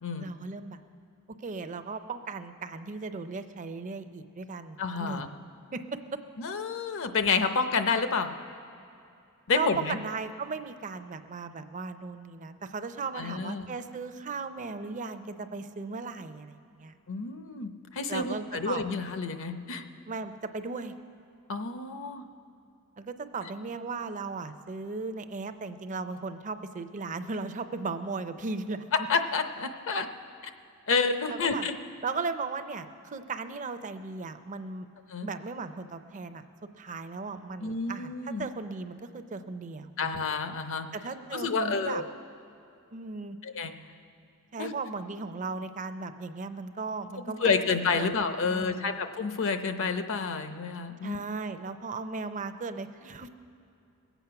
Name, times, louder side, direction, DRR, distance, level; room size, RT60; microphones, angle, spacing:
voice 1, 0.2-0.8 1.3-5.2 5.7-6.2 9.6-17.0 18.1-18.8 20.1-20.9 23.0-28.8 31.3-31.7 32.0-34.9 35.2-36.4 36.8-40.1 40.9-42.0 42.9-43.4 44.5-48.2 48.5-48.9 51.0-53.3, right 4 dB, 35° right, 10 dB, 0.5 m, -36 dB
voice 2, 4.8-5.3 6.4-8.3 9.5-10.0 13.2-13.7 17.1-19.8 21.5-22.2 29.1-30.1 30.9-31.8 35.1-35.3 37.6-38.4 40.0-40.9 41.3-42.0 43.4-43.7 44.6-44.7 47.4-51.2, left 4 dB, 60° left, 8 dB, 0.7 m, -29 dB
21.0 x 8.1 x 5.8 m, 2.6 s
head